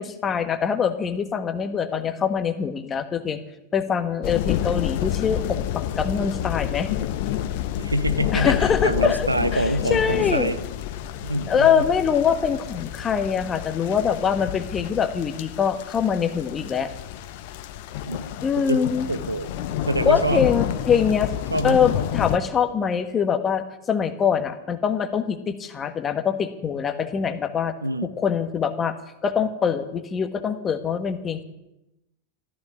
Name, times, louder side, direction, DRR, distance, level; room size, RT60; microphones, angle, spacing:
voice 1, 0.0-3.4 3.7-6.9 8.3-10.5 11.5-16.9 18.4-19.1 20.0-21.3 21.6-27.7 28.2-28.9 29.2-31.4, left 7 dB, 20° left, 10 dB, 1.4 m, -23 dB
sound 1, 4.2-22.4, left 11 dB, 50° left, 0.9 m, -29 dB
voice 2, 7.8-10.6 11.2-11.8 18.1-19.5 19.8-20.4 21.5-21.8 27.8-28.1, right 1 dB, 85° right, 13 dB, 0.8 m, -26 dB
14.0 x 13.5 x 6.1 m, 0.91 s
figure-of-eight pair, 90°, 0 cm